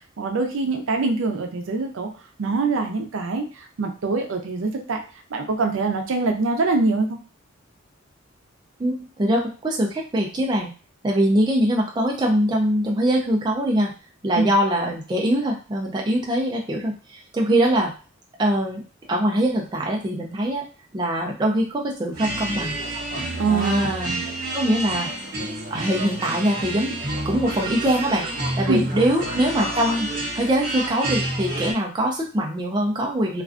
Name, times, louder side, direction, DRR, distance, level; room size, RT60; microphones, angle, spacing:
voice 1, 0.2-2.1 2.4-3.4 3.8-5.0 5.3-7.2 14.3-14.5 23.4-24.2 28.7-28.9, right 3 dB, 80° right, 3 dB, 0.5 m, -24 dB
voice 2, 8.8-10.7 11.0-13.9 14.2-17.9 18.4-18.8 19.1-20.6 20.9-22.7 23.5-24.1 24.5-25.1 25.7-27.0 27.2-28.3 28.6-33.4, right 1 dB, 20° right, -1 dB, 0.3 m, -23 dB
sound 1, 22.1-31.7, right 1 dB, 45° right, 0.7 m, -29 dB
2.4 x 2.2 x 2.4 m, 0.35 s
head